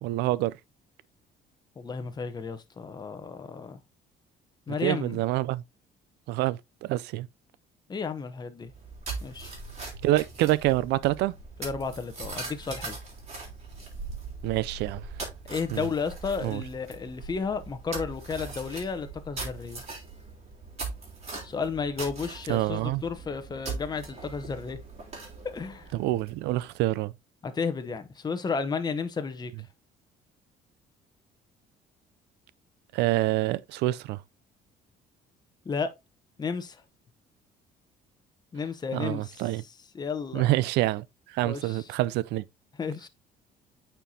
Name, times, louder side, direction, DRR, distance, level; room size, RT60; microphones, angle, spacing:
voice 1, 0.0-0.5 4.8-5.6 6.3-7.3 10.0-11.3 14.4-15.0 15.7-15.9 16.4-16.6 22.5-23.0 25.9-27.1 32.9-34.2 38.9-39.6 40.3-42.4, right 16 dB, 85° right, 0.4 m, -27 dB
voice 2, 1.8-3.8 4.7-5.2 7.9-8.7 9.2-9.6 11.6-13.0 15.5-19.8 21.4-24.8 25.5-25.9 27.4-29.5 35.6-35.9 36.4-36.8 38.5-39.5 39.9-40.5 41.4-41.9 42.8-43.1, left 5 dB, 25° left, 0.8 m, -33 dB
sound 1, 8.7-26.6, right 4 dB, 40° right, 3.4 m, -40 dB
9.0 x 4.5 x 2.7 m
cardioid pair, 110°, 17 cm